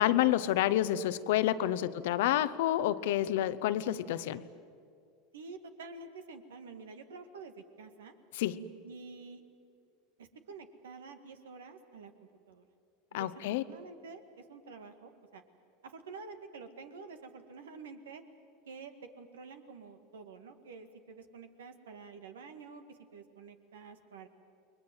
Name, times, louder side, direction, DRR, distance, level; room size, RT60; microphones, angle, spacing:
voice 1, 0.0-4.4 8.4-8.6 13.1-13.6, left 13 dB, 65° left, 15 dB, 0.9 m, -29 dB
voice 2, 1.8-2.1 5.3-8.1 8.8-9.4 10.2-12.6 13.1-15.4 15.8-18.2 18.7-24.3, right 4 dB, 75° right, 8 dB, 2.0 m, -49 dB
29.5 x 22.0 x 7.8 m, 2.3 s
hypercardioid pair, 85°, 0 cm